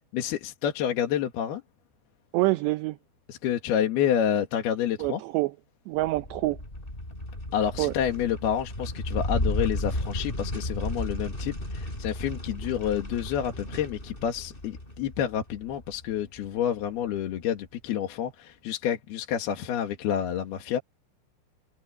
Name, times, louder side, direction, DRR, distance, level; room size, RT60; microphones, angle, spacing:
voice 1, 0.1-1.6 3.3-5.2 7.5-20.8, left 9 dB, 60° left, 3.4 m, -29 dB
voice 2, 2.3-3.0 5.0-5.5 5.9-6.6 7.8-7.9, right 19 dB, 75° right, 2.8 m, -26 dB
sound 1, 6.0-16.6, left 1 dB, 10° left, 7.4 m, -34 dB
omnidirectional pair, 5.5 m